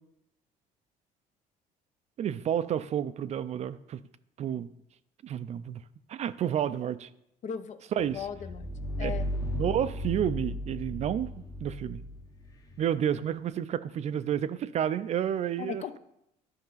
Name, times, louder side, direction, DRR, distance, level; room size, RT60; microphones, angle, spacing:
voice 1, 2.2-4.0 4.4-4.7 5.2-5.8 6.1-7.1 8.0-8.2 9.0-9.1 9.4-12.0 12.8-16.0, right 9 dB, 45° right, 14 dB, 0.4 m, -30 dB
voice 2, 7.4-8.7 9.0-9.3 15.6-16.0, left 7 dB, 50° left, 11 dB, 0.6 m, -37 dB
sound 1, 8.1-12.8, equal, 25° left, 0.9 m, -35 dB
10.5 x 5.3 x 3.9 m, 0.81 s
cardioid pair, 105°, 15 cm